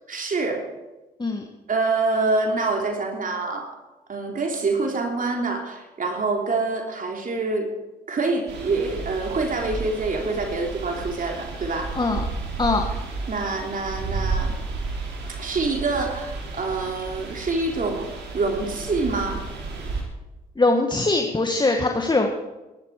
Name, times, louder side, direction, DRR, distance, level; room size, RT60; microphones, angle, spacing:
voice 1, 0.1-0.7 1.7-3.8 4.1-7.7 8.1-12.0 13.3-14.5 15.4-18.1 18.3-19.5, right 3 dB, 45° right, 2 dB, 3.4 m, -26 dB
sound 1, 8.5-20.0, right 4 dB, 70° right, 4.2 m, -32 dB
voice 2, 20.6-22.3, left 2 dB, 25° left, 3 dB, 2.0 m, -21 dB
21.5 x 12.5 x 5.0 m, 1.1 s
hypercardioid pair, 50°, 19 cm